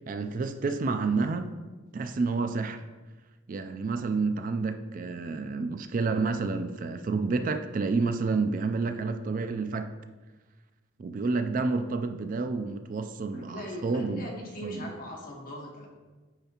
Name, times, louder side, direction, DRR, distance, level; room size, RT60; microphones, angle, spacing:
voice 1, 0.1-1.5 1.9-2.8 3.5-9.9 11.0-14.3 14.6-14.9, right 4 dB, 45° right, 8 dB, 0.3 m, -29 dB
voice 2, 13.3-15.9, equal, 50° left, -1 dB, 1.3 m, -40 dB
8.8 x 4.9 x 2.9 m, 1.3 s
head